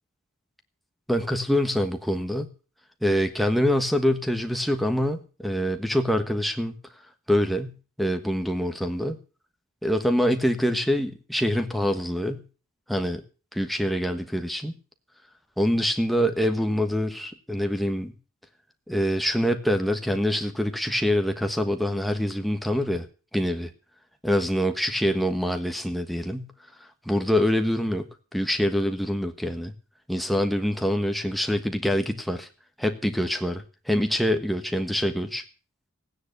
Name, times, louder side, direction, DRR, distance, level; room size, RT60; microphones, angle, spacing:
voice 1, 1.1-2.5 3.0-6.7 7.3-9.2 9.8-12.4 12.9-13.2 13.5-14.7 15.6-18.1 18.9-23.1 23.3-23.7 24.2-26.5 27.0-29.7 30.1-32.5 32.8-35.4, equal, ahead, 5 dB, 1.3 m, -25 dB
16.0 x 9.7 x 6.7 m, 0.37 s
head